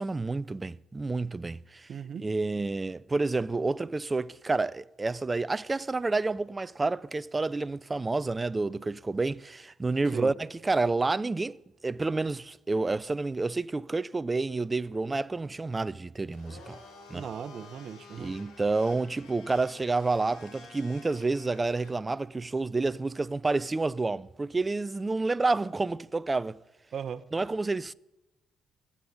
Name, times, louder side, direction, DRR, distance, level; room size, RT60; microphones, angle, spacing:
voice 1, 0.0-1.9 2.2-11.6 11.8-16.8 17.1-17.3 18.2-26.6 27.3-27.9, right 3 dB, 20° right, 0.5 m, -29 dB
voice 2, 1.9-2.3 10.1-10.3 17.1-18.3 26.9-27.3, right 7 dB, 55° right, 0.8 m, -38 dB
Domestic sounds home sounds, 16.3-21.9, left 3 dB, 75° left, 5.8 m, -50 dB
16.5 x 8.7 x 9.3 m
cardioid pair, 90°, 0 cm